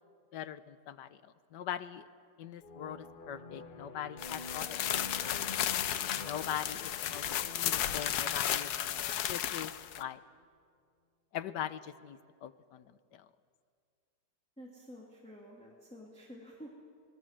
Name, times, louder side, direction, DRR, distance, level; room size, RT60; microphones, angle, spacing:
voice 1, 0.3-2.0 2.4-5.4 6.1-7.3 7.5-10.2 11.3-13.3, left 10 dB, 90° left, 13 dB, 1.4 m, -42 dB
sound 1, 2.6-10.0, left 2 dB, 35° left, 1.1 m, -48 dB
sound 2, 4.2-10.0, left 11 dB, 70° left, 1.2 m, -34 dB
voice 2, 14.6-16.8, equal, 5° left, -4 dB, 2.7 m, -50 dB
26.0 x 19.5 x 7.5 m, 2.2 s
omnidirectional pair, 1.8 m